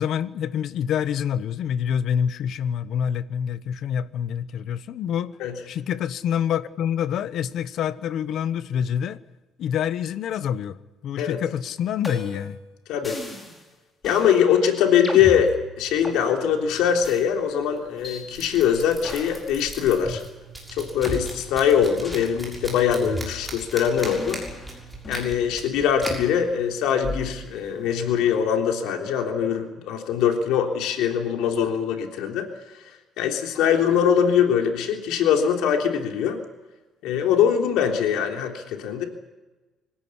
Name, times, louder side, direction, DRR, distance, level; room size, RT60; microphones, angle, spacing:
voice 1, 0.0-5.4 5.7-9.2 9.6-10.8 11.0-12.6, left 8 dB, 55° left, 14 dB, 1.0 m, -26 dB
sound 1, 12.0-12.5 13.0-13.6 14.0-14.3 15.0-16.2 17.0-17.2 18.0-18.2 19.0-19.5 20.0-20.2 21.0-21.2 22.0-22.3 23.0-23.6 24.0-25.3 26.0-26.2 27.0-27.4, left 1 dB, 15° left, 4.5 m, -35 dB
voice 2, 14.0-20.2 20.7-24.4 25.1-32.5 33.2-36.4 37.0-39.0, left 8 dB, 90° left, 3 dB, 3.4 m, -22 dB
sound 2, 15.8-28.4, right 1 dB, ahead, 6.5 m, -41 dB
24.5 x 16.5 x 9.9 m, 1.1 s
cardioid pair, 165°, 0 cm